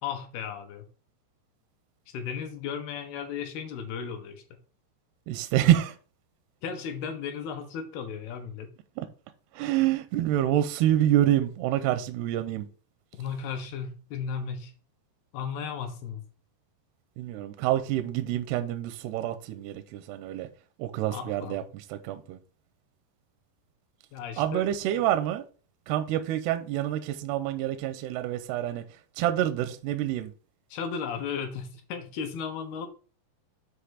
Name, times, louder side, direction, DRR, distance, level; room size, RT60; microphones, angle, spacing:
voice 1, 0.0-0.9 2.1-4.4 6.6-8.7 13.2-14.7 15.3-16.2 21.1-21.6 24.1-24.7 30.7-32.9, left 6 dB, 75° left, 2.5 m, -35 dB
voice 2, 5.3-5.9 9.6-12.7 17.2-20.5 20.8-21.6 21.9-22.4 24.4-25.4 25.9-28.8 29.2-30.3, right 12 dB, 85° right, 2.4 m, -27 dB
7.9 x 3.2 x 6.2 m
omnidirectional pair, 5.1 m